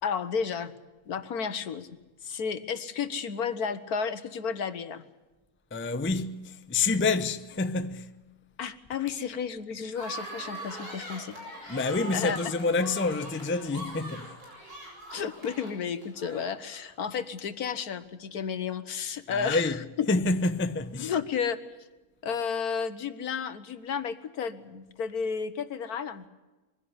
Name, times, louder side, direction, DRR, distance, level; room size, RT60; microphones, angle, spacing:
voice 1, 0.0-0.7 1.1-1.9 2.2-5.0 8.6-12.4 15.1-20.1 21.0-21.6 22.2-26.2, left 6 dB, 75° left, 1.7 m, -32 dB
voice 2, 5.7-8.1 11.7-14.3 19.3-19.8 20.1-21.1, left 3 dB, 15° left, 0.5 m, -28 dB
sound 1, 9.9-16.8, right 1 dB, 85° right, 8.2 m, -42 dB
22.5 x 16.5 x 9.7 m
omnidirectional pair, 1.6 m